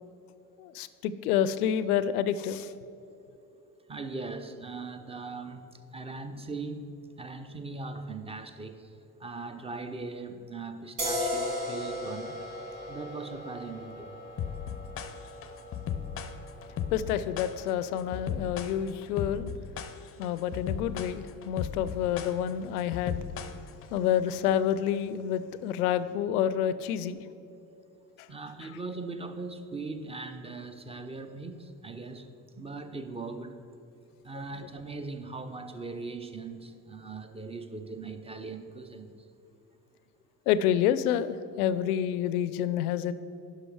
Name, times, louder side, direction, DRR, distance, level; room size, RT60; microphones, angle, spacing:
voice 1, 0.6-2.7 16.9-19.5 20.2-23.3 23.9-27.2 40.5-43.1, left 9 dB, 70° left, 0.5 m, -28 dB
voice 2, 3.9-8.9 9.2-12.4 12.9-14.1 28.3-32.3 32.6-33.6 34.2-39.1, right 3 dB, 15° right, 0.6 m, -40 dB
sound 1, 11.0-18.3, left 1 dB, 70° right, 1.8 m, -37 dB
sound 2, 14.4-24.0, left 8 dB, 30° left, 0.6 m, -36 dB
11.0 x 5.1 x 4.7 m
figure-of-eight pair, 55°, 47 cm